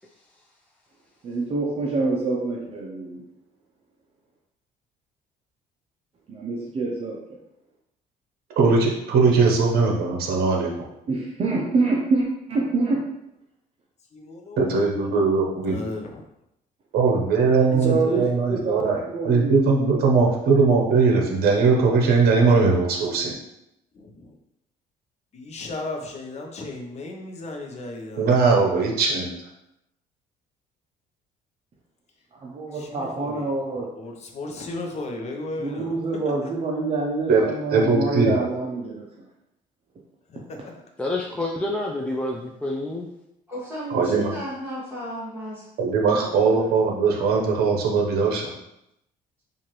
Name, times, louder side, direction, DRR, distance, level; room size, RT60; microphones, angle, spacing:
voice 1, 1.2-3.2 6.3-7.2 11.1-13.0 17.8-20.4 32.3-33.9 35.6-39.1, right 3 dB, 35° right, -3 dB, 0.6 m, -26 dB
voice 2, 8.6-10.7 14.6-15.8 16.9-23.3 28.2-29.4 37.3-37.4 37.7-38.3 43.9-44.3 45.8-48.5, right 4 dB, 65° right, 0 dB, 0.9 m, -20 dB
voice 3, 14.1-15.1 15.7-16.2 17.5-18.4 23.9-24.3 25.3-28.3 32.7-33.6 34.0-36.3 40.3-40.8, left 2 dB, 40° left, 2 dB, 0.7 m, -35 dB
voice 4, 41.0-43.1, left 2 dB, 5° left, -3 dB, 0.3 m, -28 dB
voice 5, 43.5-45.7 46.2-46.7, equal, 15° right, -9 dB, 1.4 m, -35 dB
4.5 x 2.5 x 3.0 m, 0.84 s
cardioid pair, 110°, 17 cm